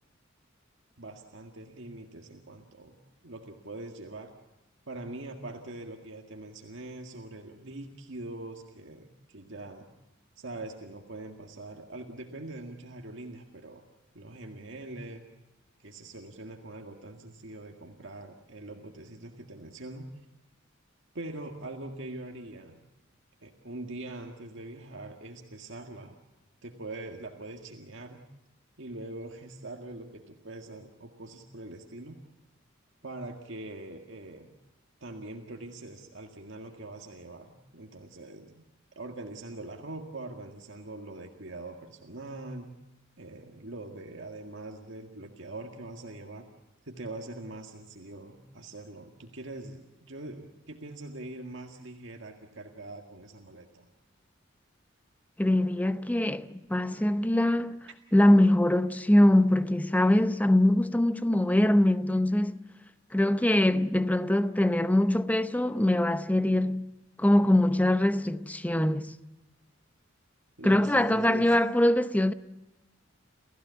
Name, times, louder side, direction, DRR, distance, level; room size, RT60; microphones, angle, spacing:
voice 1, 1.0-4.3 4.9-9.9 10.4-13.9 14.1-15.3 15.8-20.1 21.1-22.8 23.4-26.2 26.6-28.2 28.8-32.2 33.0-34.5 35.0-38.7 39.0-42.7 43.2-46.5 46.8-53.9 70.6-71.6, right 2 dB, 65° right, 1.9 m, -43 dB
voice 2, 55.4-57.8 58.1-62.6 63.1-66.9 67.2-69.1 70.6-72.3, left 1 dB, 10° left, 0.7 m, -23 dB
29.0 x 15.5 x 8.3 m
head